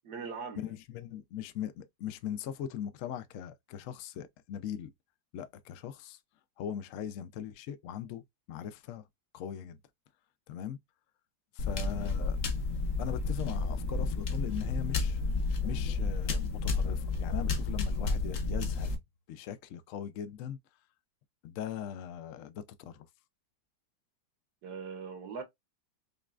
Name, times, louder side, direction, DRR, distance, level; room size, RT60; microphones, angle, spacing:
voice 1, 0.0-0.7 12.0-12.1 24.6-25.4, right 5 dB, 65° right, 1.3 m, -41 dB
voice 2, 0.6-4.9 5.3-6.2 6.6-8.2 8.5-9.0 9.3-9.8 10.5-10.8 11.5-12.4 13.0-15.2 15.6-18.9 19.3-20.6 21.4-23.1, left 9 dB, 85° left, 0.7 m, -40 dB
sound 1, 11.6-19.0, left 3 dB, 55° left, 0.9 m, -31 dB
5.2 x 2.4 x 2.4 m
omnidirectional pair, 2.0 m